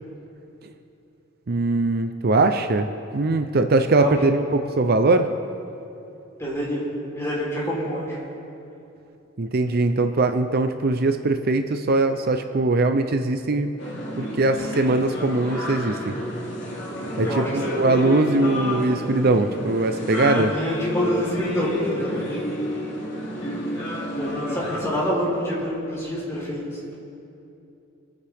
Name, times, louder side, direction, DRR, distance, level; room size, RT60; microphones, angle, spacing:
voice 1, 1.5-2.9 3.1-5.3 9.4-13.7 14.2-16.1 17.2-17.3 17.7-20.5, right 2 dB, 50° right, 8 dB, 0.6 m, -21 dB
voice 2, 3.9-4.3 6.4-6.8 7.1-8.2 17.2-17.8 20.3-22.4 24.1-26.9, equal, 15° left, -6 dB, 3.8 m, -27 dB
sound 1, 13.8-24.8, left 1 dB, 65° left, 2.8 m, -30 dB
28.5 x 9.5 x 3.5 m, 2.8 s
head